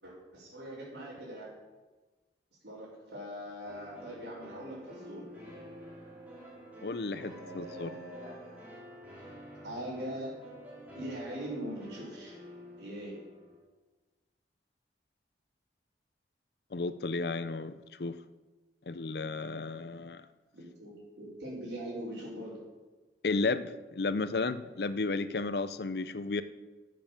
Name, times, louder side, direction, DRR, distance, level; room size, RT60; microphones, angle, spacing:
voice 1, 0.0-1.5 2.6-5.3 7.1-8.6 9.6-10.5 10.9-12.4 12.8-13.2 20.5-22.7, right 1 dB, 90° right, -10 dB, 4.7 m, -42 dB
sound 1, 3.6-13.6, equal, 10° right, 4.1 m, -50 dB
voice 2, 6.8-8.0 16.7-18.2 18.9-20.3 23.2-26.4, left 3 dB, 65° left, 13 dB, 0.6 m, -33 dB
12.5 x 7.7 x 7.2 m, 1.2 s
head